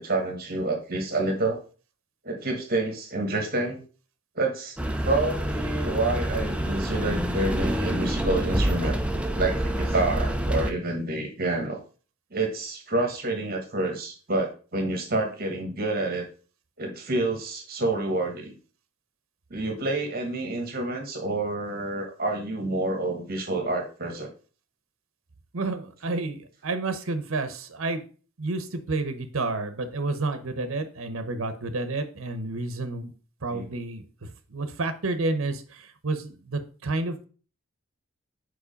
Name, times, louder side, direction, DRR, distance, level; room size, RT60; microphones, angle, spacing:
voice 1, 0.0-1.6 2.2-3.8 4.3-9.0 9.4-11.8 12.3-16.3 16.8-18.5 19.5-24.3 33.5-33.7, right 2 dB, 45° right, 2 dB, 1.3 m, -28 dB
sound 1, 4.8-10.7, right 1 dB, 5° right, 0.4 m, -27 dB
voice 2, 25.5-28.0 28.4-33.1 33.4-37.3, right 3 dB, 75° right, 9 dB, 0.8 m, -30 dB
4.9 x 4.5 x 5.1 m, 0.38 s
head